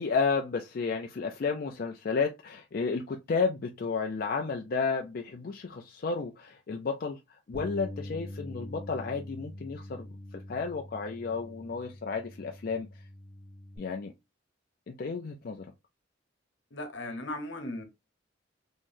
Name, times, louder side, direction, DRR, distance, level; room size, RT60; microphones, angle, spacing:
voice 1, 0.0-7.2 7.5-10.1 10.3-12.9 13.8-14.1 14.9-15.7, left 4 dB, 50° left, 0.4 m, -32 dB
Bass guitar, 7.5-13.8, left 1 dB, 40° right, 1.7 m, -44 dB
voice 2, 16.7-17.8, left 1 dB, 75° left, 1.0 m, -37 dB
3.7 x 3.0 x 2.6 m
head